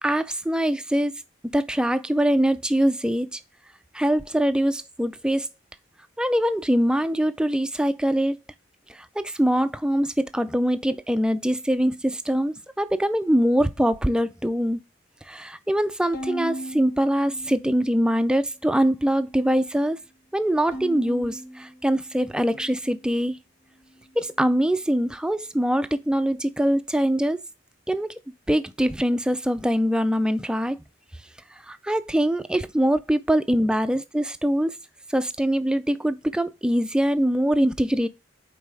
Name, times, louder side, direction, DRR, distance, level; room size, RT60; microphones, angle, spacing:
voice 1, 0.0-1.1 1.4-3.4 3.9-5.5 6.2-8.4 8.9-14.8 15.3-20.0 20.3-23.4 24.2-27.4 27.9-28.2 28.5-30.8 31.7-34.8 35.1-38.1, equal, 5° right, 0.4 m, -23 dB
Bowed string instrument, 16.1-18.5 19.0-19.7 20.7-23.2, right 1 dB, 70° left, 2.1 m, -38 dB
5.4 x 4.2 x 4.6 m
head